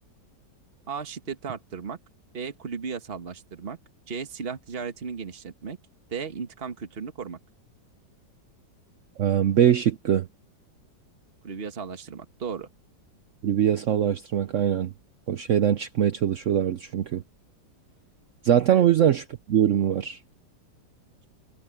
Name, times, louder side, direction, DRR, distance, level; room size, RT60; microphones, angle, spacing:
voice 1, 0.9-2.0 2.3-3.8 4.1-5.8 6.1-7.4 11.4-12.7 18.7-18.8, right 5 dB, 35° right, 1.7 m, -35 dB
voice 2, 9.2-10.3 13.4-14.9 15.3-17.2 18.4-20.2, right 10 dB, 65° right, 0.7 m, -22 dB
omnidirectional pair, 1.9 m